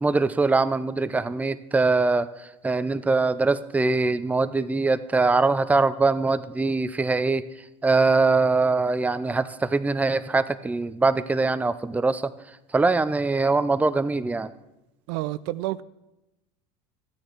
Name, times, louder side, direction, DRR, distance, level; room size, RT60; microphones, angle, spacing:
voice 1, 0.0-7.4 7.8-12.3 12.7-14.5, right 3 dB, 10° right, 0.5 m, -22 dB
voice 2, 15.1-15.8, right 17 dB, 70° right, 0.4 m, -29 dB
13.0 x 9.1 x 4.5 m
supercardioid pair, 95°, 15 cm